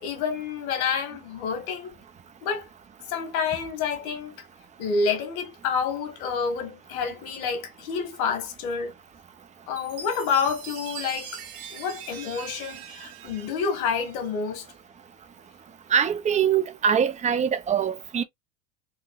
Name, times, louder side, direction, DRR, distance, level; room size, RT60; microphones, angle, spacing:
voice 1, 0.0-1.9 2.4-2.7 3.1-4.3 4.8-9.0 9.7-11.3 11.7-14.7, left 5 dB, 65° left, 1.9 m, -28 dB
Chime, 9.8-14.4, right 7 dB, 65° right, 1.5 m, -42 dB
voice 2, 15.9-18.2, right 7 dB, 15° right, 0.5 m, -23 dB
4.1 x 2.7 x 2.4 m
hypercardioid pair, 95°, 46 cm